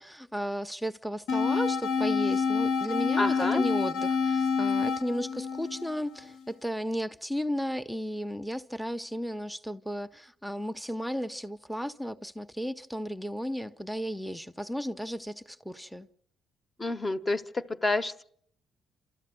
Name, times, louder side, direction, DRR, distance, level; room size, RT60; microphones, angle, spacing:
voice 1, 0.0-16.1, equal, ahead, 0.8 m, -34 dB
sound 1, 1.3-6.3, left 5 dB, 85° left, 1.1 m, -27 dB
voice 2, 3.2-3.6 16.8-18.2, left 2 dB, 25° left, 1.1 m, -29 dB
28.5 x 13.5 x 7.7 m
cardioid pair, 90°, 0 cm